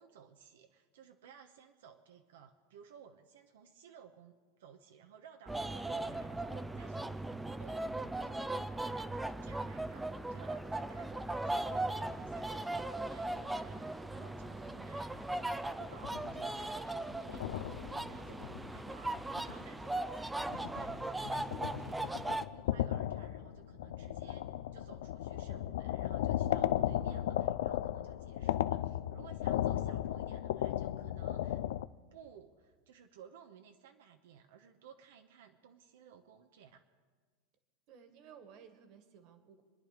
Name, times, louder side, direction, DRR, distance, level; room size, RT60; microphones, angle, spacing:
voice 1, 0.0-7.3 7.6-15.6 15.9-31.6 32.1-36.8, right 8 dB, 85° right, 5 dB, 1.1 m, -58 dB
sound 1, 5.5-22.4, right 2 dB, 5° right, 0.5 m, -38 dB
sound 2, 15.8-16.5 17.0-19.7 20.2-31.9, left 12 dB, 80° left, 0.5 m, -36 dB
voice 2, 37.9-39.6, right 7 dB, 45° right, 8 dB, 1.9 m, -56 dB
27.5 x 10.0 x 5.1 m, 1.5 s
supercardioid pair, 145°, 0 cm